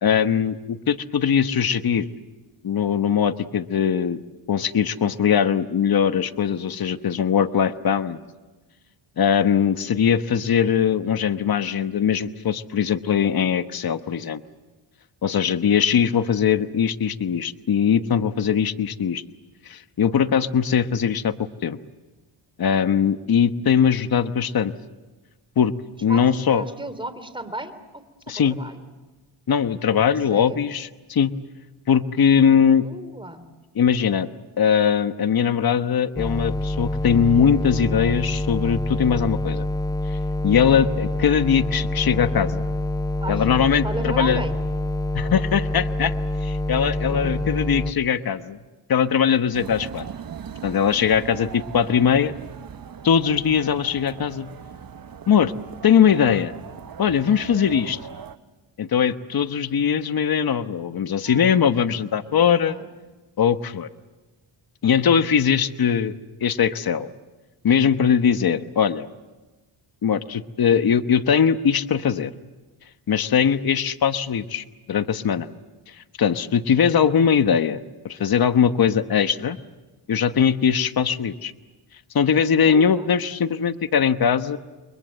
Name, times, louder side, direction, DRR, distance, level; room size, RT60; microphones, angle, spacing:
voice 1, 0.0-2.1 2.6-4.2 4.5-8.2 9.2-14.4 15.2-19.2 19.6-21.8 22.6-24.7 25.6-25.7 26.0-26.6 28.3-28.6 29.5-31.3 31.9-32.9 33.8-34.3 34.6-39.7 40.1-40.2 40.4-42.7 43.3-44.4 45.1-46.1 46.4-48.6 48.9-50.1 50.6-52.3 53.0-54.5 55.3-55.5 55.8-56.5 57.0-58.0 58.8-62.8 63.4-63.9 64.8-66.1 66.4-67.1 67.6-69.1 70.0-72.3 73.1-75.5 75.9-79.6 80.1-81.5 82.1-84.6, left 7 dB, 45° left, 11 dB, 1.2 m, -21 dB
voice 2, 26.1-28.8 30.3-30.6 32.8-33.4 43.2-43.4 43.8-44.5 47.1-47.4 61.2-61.8 62.3-62.9 82.6-83.1, right 1 dB, 10° right, 10 dB, 3.2 m, -34 dB
sound 1, 36.2-47.9, left 1 dB, 5° left, 0.8 m, -26 dB
sound 2, 49.5-58.4, right 8 dB, 45° right, 1.0 m, -39 dB
30.0 x 22.5 x 7.6 m, 1.2 s
cardioid pair, 90°, 50 cm